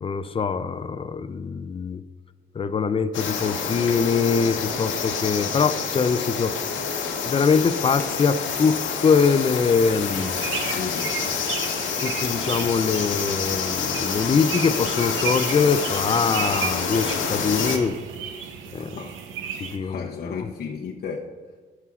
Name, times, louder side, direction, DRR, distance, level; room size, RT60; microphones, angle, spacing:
voice 1, 0.0-2.0 2.5-6.6 7.2-10.4 12.0-18.0 18.7-18.9 19.6-20.1 20.4-20.5, left 5 dB, 30° left, 13 dB, 0.4 m, -23 dB
sound 1, 3.1-17.8, left 6 dB, 75° left, 1.1 m, -28 dB
sound 2, 10.1-19.8, right 7 dB, 85° right, 0.8 m, -34 dB
voice 2, 10.7-11.1 18.8-19.2 19.8-21.3, left 6 dB, 55° left, -1 dB, 0.7 m, -33 dB
15.5 x 5.6 x 2.4 m, 1.4 s
cardioid pair, 90°, 20 cm